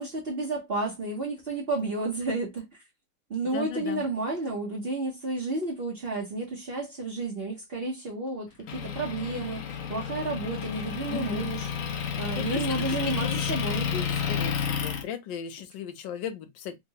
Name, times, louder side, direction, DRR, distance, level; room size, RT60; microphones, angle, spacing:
voice 1, 0.0-2.7 3.3-11.7 12.2-13.9, right 3 dB, 45° right, 0.8 m, -31 dB
voice 2, 3.5-4.0 11.1-11.5 12.3-13.6 13.9-16.8, left 8 dB, 85° left, 1.3 m, -36 dB
Motor vehicle (road) / Engine, 8.7-15.0, left 7 dB, 65° left, 0.8 m, -31 dB
3.6 x 2.2 x 2.8 m
omnidirectional pair, 2.0 m